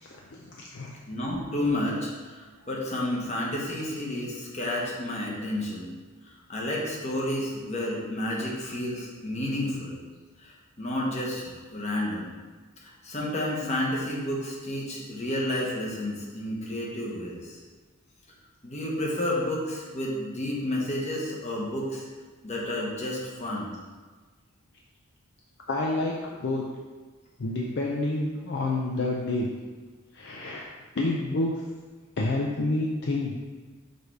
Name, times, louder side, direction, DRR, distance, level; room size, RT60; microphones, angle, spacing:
voice 1, 0.0-0.9 25.7-26.6 27.4-29.5 30.1-30.6 31.0-31.5 32.2-33.3, left 2 dB, 50° left, -2 dB, 0.5 m, -28 dB
voice 2, 1.1-5.9 6.2-10.0 10.4-12.3 12.8-17.6 18.6-22.1 22.4-23.7, left 1 dB, 30° left, -3 dB, 1.1 m, -31 dB
6.6 x 3.3 x 4.7 m, 1.4 s
head